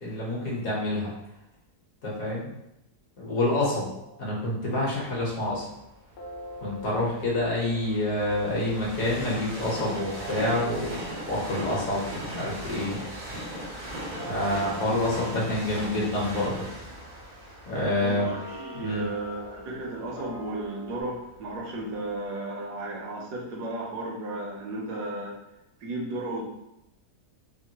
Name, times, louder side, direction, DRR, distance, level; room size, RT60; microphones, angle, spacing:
voice 1, 0.0-1.1 2.0-2.5 3.2-3.9 4.2-5.6 6.6-13.0 14.3-16.6 17.7-18.3 18.7-19.0, left 1 dB, 60° left, -5 dB, 1.4 m, -27 dB
sound 1, 4.0-5.4 6.2-21.0, right 2 dB, 85° left, 1.3 m, -45 dB
Train, 5.4-21.4 22.0-22.1, equal, 55° right, 0.5 m, -39 dB
voice 2, 18.0-25.4 25.8-26.5, right 1 dB, 75° right, -1 dB, 1.2 m, -34 dB
3.6 x 2.1 x 2.7 m, 0.87 s
omnidirectional pair, 1.8 m